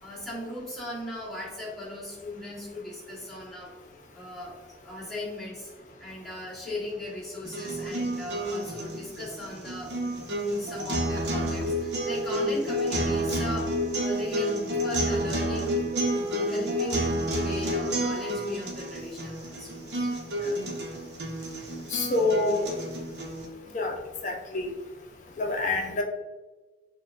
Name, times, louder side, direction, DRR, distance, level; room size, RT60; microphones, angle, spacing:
voice 1, 0.0-3.7 4.1-5.7 6.0-15.8 16.1-20.1, left 1 dB, ahead, -8 dB, 1.2 m, -38 dB
sound 1, 7.4-23.5, equal, 65° right, 0.8 m, -30 dB
voice 2, 21.9-22.7 23.7-23.9 24.2-24.7 25.4-26.0, left 3 dB, 45° left, 2 dB, 0.6 m, -27 dB
6.6 x 2.3 x 2.4 m, 1.2 s
head